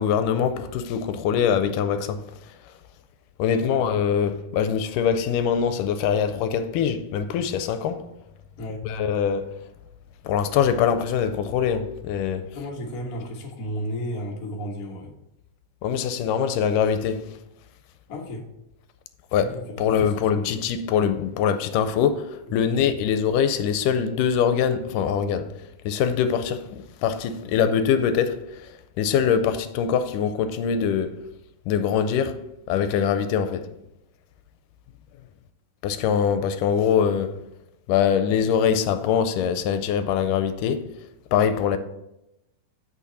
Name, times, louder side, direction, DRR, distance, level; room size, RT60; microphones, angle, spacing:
voice 1, 0.0-2.2 3.4-8.1 8.9-9.5 10.2-12.5 15.8-17.3 19.3-25.5 25.9-28.7 29.0-31.2 31.7-32.4 32.7-33.7 35.8-37.4 37.9-40.9 41.3-41.8, left 7 dB, 80° left, 2.1 m, -23 dB
voice 2, 3.5-3.8 8.6-8.8 12.5-15.1 18.1-18.4 19.4-19.6 19.9-20.6 22.6-23.0, equal, 55° left, 0.9 m, -33 dB
8.4 x 6.4 x 4.1 m
omnidirectional pair, 3.8 m